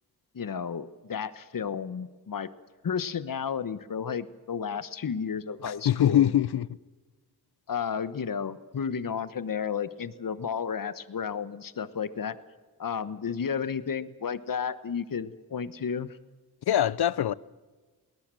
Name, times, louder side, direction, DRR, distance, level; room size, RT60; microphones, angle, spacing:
voice 1, 0.3-2.5 2.8-6.3 7.7-12.4 12.8-16.2, left 6 dB, 55° left, 1.1 m, -32 dB
voice 2, 5.6-6.7 16.7-17.3, left 11 dB, 75° left, 0.7 m, -23 dB
22.0 x 18.5 x 7.6 m
cardioid pair, 65°, 39 cm